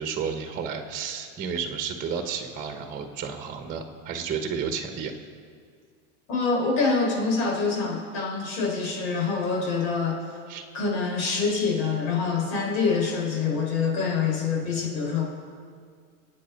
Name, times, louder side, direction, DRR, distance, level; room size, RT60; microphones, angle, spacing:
voice 1, 0.0-5.1 10.5-10.6, right 6 dB, 20° right, 5 dB, 1.2 m, -32 dB
voice 2, 6.3-10.2 10.7-15.2, left 4 dB, 70° left, -1 dB, 5.6 m, -25 dB
27.5 x 9.2 x 5.4 m, 2.1 s
supercardioid pair, 150°, 44 cm